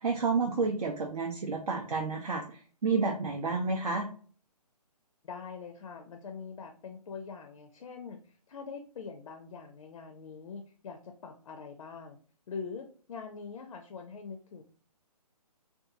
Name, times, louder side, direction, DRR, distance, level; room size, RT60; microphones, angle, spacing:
voice 1, 0.0-4.1, right 4 dB, 70° right, 1 dB, 0.6 m, -30 dB
voice 2, 5.2-12.2 12.5-14.6, left 5 dB, 60° left, 5 dB, 0.4 m, -43 dB
2.6 x 2.3 x 2.5 m, 0.42 s
figure-of-eight pair, 140°, 21 cm